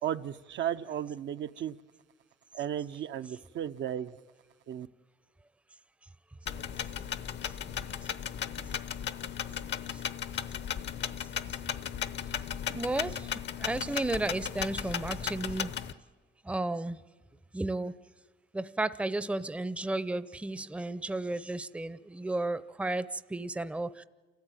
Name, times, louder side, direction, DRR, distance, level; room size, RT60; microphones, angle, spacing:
voice 1, 0.0-1.7 2.5-4.1 4.7-4.9, right 10 dB, 70° right, 8 dB, 0.7 m, -34 dB
sound 1, 6.5-15.9, left 9 dB, 60° left, 0.8 m, -36 dB
voice 2, 12.7-15.8 16.4-17.0 17.5-17.9 18.5-24.0, right 2 dB, 5° right, 15 dB, 0.6 m, -33 dB
28.0 x 14.0 x 9.0 m, 1.4 s
cardioid pair, 90°, 20 cm